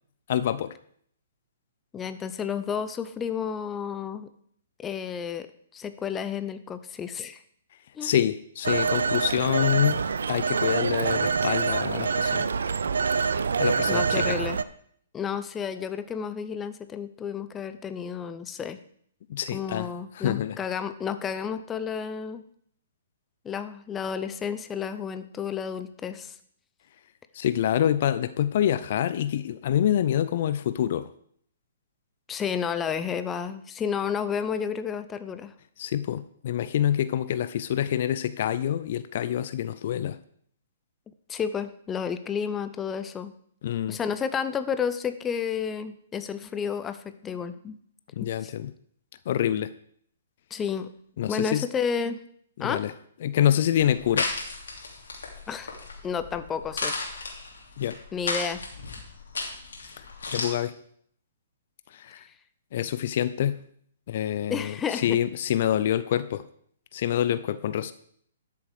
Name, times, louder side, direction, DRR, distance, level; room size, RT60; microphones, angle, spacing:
voice 1, 0.3-0.7 8.0-10.0 10.3-12.5 13.6-14.4 19.3-19.9 20.1-20.6 27.3-31.1 35.8-40.2 43.6-44.0 48.2-48.7 49.3-49.7 51.2-51.6 52.6-52.9 53.2-54.3 57.8-58.0 60.0-60.7 61.9-62.2 62.7-63.6 64.1-66.4 66.9-67.9, left 10 dB, 55° left, 14 dB, 0.5 m, -26 dB
voice 2, 1.9-4.3 4.8-5.5 5.7-7.4 7.9-8.2 13.9-14.6 15.1-18.8 19.5-22.4 23.4-26.3 32.3-35.5 41.3-43.3 43.9-47.8 48.4-48.5 50.5-50.9 51.3-52.2 52.6-52.8 55.5-55.7 56.0-57.0 58.1-58.6 64.5-65.2, left 7 dB, 15° left, 11 dB, 0.7 m, -31 dB
Telephone, 8.6-14.6, right 5 dB, 75° right, 0.5 m, -26 dB
sound 1, 53.8-60.5, left 3 dB, 75° left, 3.0 m, -34 dB
12.5 x 7.1 x 4.9 m, 0.63 s
hypercardioid pair, 130°, 0 cm